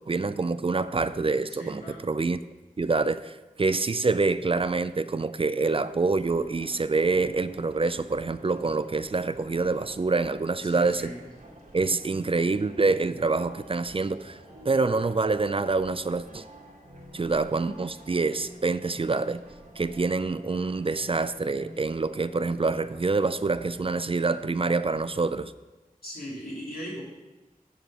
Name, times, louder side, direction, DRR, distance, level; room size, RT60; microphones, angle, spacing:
voice 1, 0.1-2.4 2.8-11.1 11.7-14.4 14.7-16.4 17.1-19.4 19.8-25.5, right 3 dB, 40° right, 13 dB, 0.4 m, -26 dB
voice 2, 1.6-2.0 10.6-11.3 26.0-27.0, equal, 90° left, -5 dB, 2.7 m, -38 dB
sound 1, 6.1-23.8, right 1 dB, 80° right, 2.3 m, -49 dB
9.8 x 4.4 x 6.2 m, 1.2 s
wide cardioid pair, 45°, 15 cm